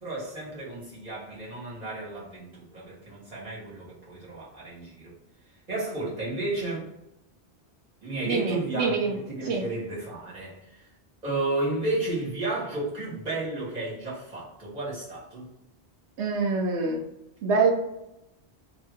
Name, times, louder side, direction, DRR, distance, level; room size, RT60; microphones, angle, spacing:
voice 1, 0.0-5.1 5.7-6.9 8.0-10.9 11.2-15.5, right 2 dB, 40° right, -7 dB, 1.7 m, -33 dB
voice 2, 8.2-9.2 9.4-9.6 16.2-17.0 17.4-17.7, right 4 dB, 85° right, -1 dB, 0.9 m, -25 dB
2.9 x 2.7 x 3.4 m, 0.87 s
omnidirectional pair, 1.1 m